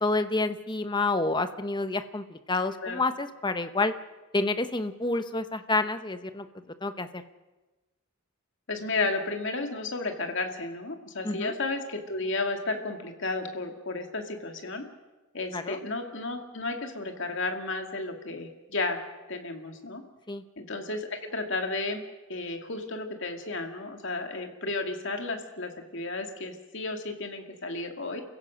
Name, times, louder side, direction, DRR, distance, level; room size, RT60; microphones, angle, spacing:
voice 1, 0.0-3.9 4.3-6.5 6.8-7.2 11.2-11.5 15.5-15.8 20.3-20.4, left 2 dB, 20° left, 9 dB, 1.0 m, -28 dB
voice 2, 8.7-14.8 15.3-19.0 19.3-20.0 20.6-22.0 22.3-28.2, left 3 dB, 60° left, 4 dB, 2.4 m, -33 dB
28.5 x 16.0 x 6.4 m, 1.1 s
head